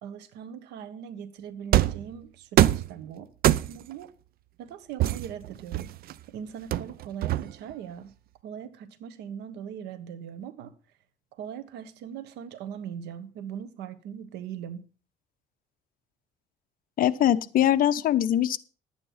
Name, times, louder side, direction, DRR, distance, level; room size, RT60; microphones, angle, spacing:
voice 1, 0.0-3.3 3.7-4.1 4.6-5.9 6.3-8.1 8.4-10.7 11.3-14.8, right 8 dB, 85° right, 1.5 m, -40 dB
sound 1, 1.7-2.1 2.6-2.9 3.4-3.9 5.0-6.1 6.7-7.7, right 13 dB, 65° right, 0.6 m, -23 dB
voice 2, 17.0-18.6, left 11 dB, 55° left, 0.8 m, -22 dB
11.0 x 9.2 x 5.7 m
cardioid pair, 110°, 17 cm